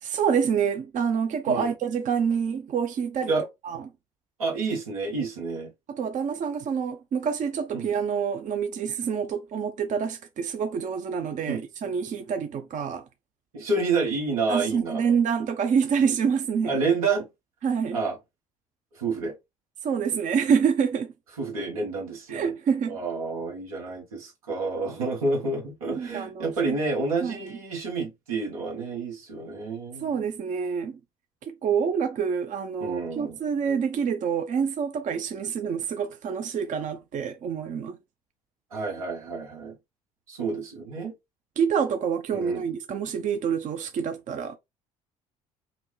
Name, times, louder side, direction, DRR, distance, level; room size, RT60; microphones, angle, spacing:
voice 1, 0.0-3.3 3.6-3.8 5.9-13.0 14.5-16.7 17.6-18.0 19.8-21.1 22.3-23.0 26.0-26.8 27.2-27.4 30.0-31.0 31.4-38.0 41.6-44.6, right 6 dB, 45° right, 0.7 m, -27 dB
voice 2, 4.4-5.7 7.7-7.9 11.5-11.6 13.5-15.0 16.7-17.3 17.9-18.2 18.9-19.4 21.4-22.5 22.9-30.1 32.8-33.4 38.7-39.7 40.3-41.1 42.3-42.6, right 3 dB, 85° right, 1.4 m, -29 dB
5.8 x 2.2 x 3.2 m
hypercardioid pair, 60°, 18 cm